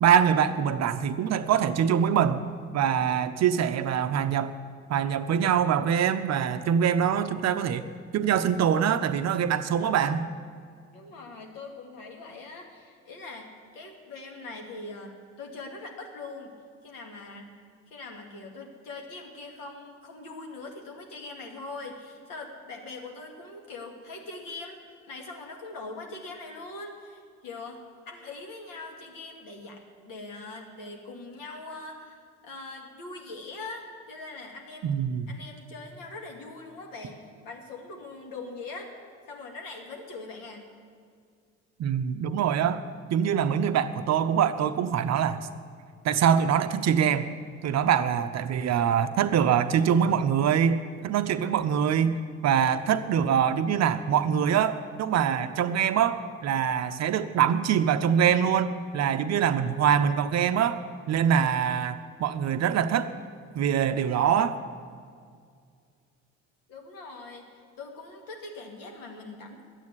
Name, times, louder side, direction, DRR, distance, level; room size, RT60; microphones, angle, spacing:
voice 1, 0.0-2.4 2.7-4.6 4.9-7.8 8.1-10.3 34.8-35.3 41.8-42.8 43.1-45.4 46.0-47.3 47.6-60.8 61.1-63.1 63.5-64.6, right 8 dB, 45° right, 11 dB, 0.7 m, -24 dB
voice 2, 10.9-16.5 16.8-17.5 17.9-24.8 25.1-34.9 35.3-38.9 39.3-40.7 66.7-69.6, left 3 dB, 60° left, 2 dB, 2.3 m, -42 dB
11.5 x 9.5 x 9.7 m, 2.2 s
figure-of-eight pair, 50°, 39 cm